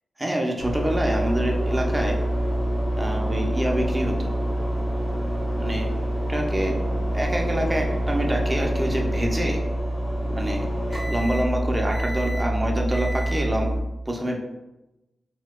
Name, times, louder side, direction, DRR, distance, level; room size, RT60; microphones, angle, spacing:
voice 1, 0.2-2.2 3.0-4.3 5.6-6.8 7.1-9.6 10.3-10.7 11.1-14.4, right 1 dB, 15° right, 1 dB, 0.5 m, -27 dB
sound 1, 0.6-13.8, right 1 dB, 20° left, 1.2 m, -26 dB
4.4 x 2.2 x 2.2 m, 0.96 s
wide cardioid pair, 115°, 0 cm